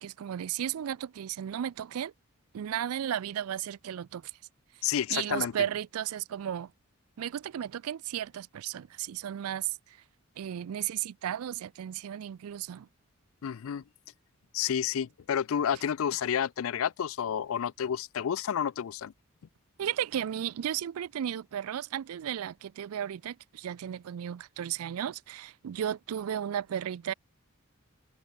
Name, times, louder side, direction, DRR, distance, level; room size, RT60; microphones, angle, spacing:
voice 1, 0.0-2.1 2.5-4.3 5.1-6.7 7.2-10.0 10.4-12.9 19.8-27.1, right 10 dB, 80° right, 0.4 m, -34 dB
voice 2, 4.8-5.5 13.4-13.8 14.5-19.1, left 8 dB, 70° left, 0.4 m, -30 dB
head